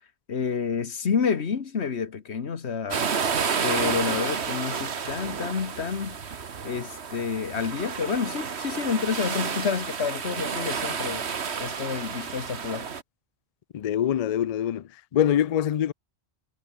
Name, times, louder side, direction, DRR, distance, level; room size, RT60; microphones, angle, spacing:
voice 1, 0.3-3.0 3.6-6.2 6.6-11.3 11.6-12.9, left 6 dB, 85° left, 1.7 m, -29 dB
sound 1, 2.9-13.0, right 6 dB, 80° right, 1.6 m, -30 dB
voice 2, 13.7-14.8 15.1-15.9, left 10 dB, 50° left, 0.5 m, -24 dB
omnidirectional pair, 1.1 m